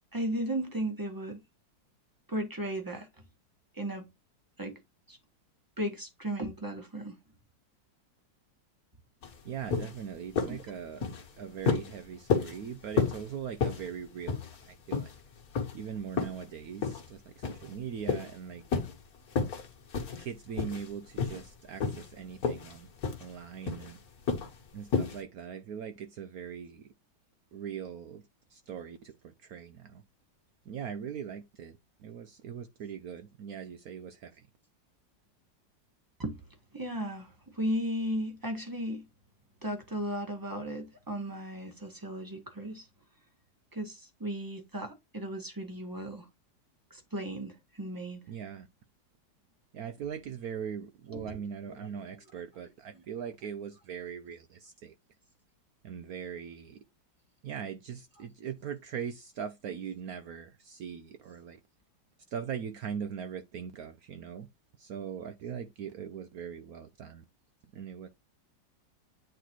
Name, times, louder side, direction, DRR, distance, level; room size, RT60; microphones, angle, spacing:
voice 1, 0.1-1.4 2.3-3.1 3.7-4.1 4.6-4.8 5.1-5.2 5.8-7.2 10.5-10.6 36.2-36.4 36.7-39.0 39.6-42.9 43.7-46.3 46.9-48.2 51.1-52.2 52.6-53.0, right 1 dB, 10° right, 1.3 m, -36 dB
sound 1, 9.2-9.4 9.7-10.0 10.4-10.6 11.0-11.3 11.7-11.9 12.3-12.6 13.0-13.2 13.6-13.9 14.3-14.6 14.9-15.2 15.6-15.7 16.2-16.4 16.8-17.1 17.4-17.7 18.1-18.3 18.7-19.0 19.3-19.7 19.9-20.3 20.6-20.9 21.2-21.5 21.8-22.1 22.4-22.8 23.0-23.3 23.7-23.9 24.3-24.5 24.9-25.2, left 5 dB, 55° left, 1.7 m, -30 dB
voice 2, 9.4-11.0 11.4-14.4 14.7-15.1 15.7-18.6 20.2-22.9 23.2-24.0 24.7-26.9 27.5-28.2 28.5-29.1 29.4-30.0 30.7-31.7 32.0-34.3 48.3-48.7 49.7-54.9 55.8-56.8 57.4-61.6 62.3-64.5 64.8-67.2 67.7-68.1, right 8 dB, 70° right, 0.9 m, -40 dB
9.1 x 4.0 x 3.0 m
omnidirectional pair, 2.0 m